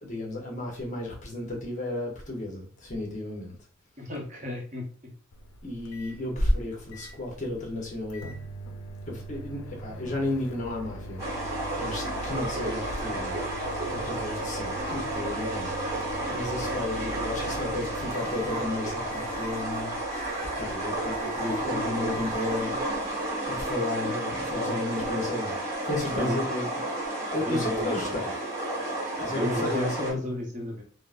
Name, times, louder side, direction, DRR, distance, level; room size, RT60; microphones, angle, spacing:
voice 1, 0.0-3.5 5.6-8.4 9.1-11.2 11.8-13.4 13.9-15.7 16.3-19.9 20.6-22.8 23.5-25.6 25.8-26.7 27.3-28.3 29.2-30.2, left 2 dB, 35° left, -1 dB, 0.8 m, -32 dB
voice 2, 4.0-4.8 17.1-17.2 26.0-26.4 27.3-28.2 29.2-30.8, left 1 dB, 35° right, 0 dB, 0.8 m, -33 dB
Microwave oven, 5.3-23.3, right 1 dB, 85° left, 0.4 m, -42 dB
sound 1, 11.2-30.1, right 1 dB, 15° right, 1.1 m, -31 dB
3.7 x 2.1 x 2.4 m, 0.42 s
head